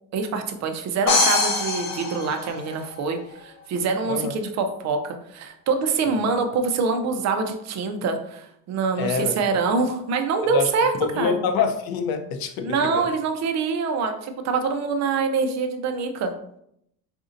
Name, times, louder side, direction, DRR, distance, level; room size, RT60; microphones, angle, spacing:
voice 1, 0.1-11.3 12.6-16.3, right 4 dB, 50° right, 6 dB, 0.6 m, -25 dB
sound 1, 1.1-3.0, left 3 dB, 60° left, 0.9 m, -23 dB
voice 2, 4.1-4.4 6.0-6.2 9.0-9.4 10.5-10.7 11.0-13.1, left 5 dB, 80° left, 6 dB, 0.7 m, -26 dB
4.9 x 2.6 x 2.5 m, 0.74 s
cardioid pair, 150°, 35 cm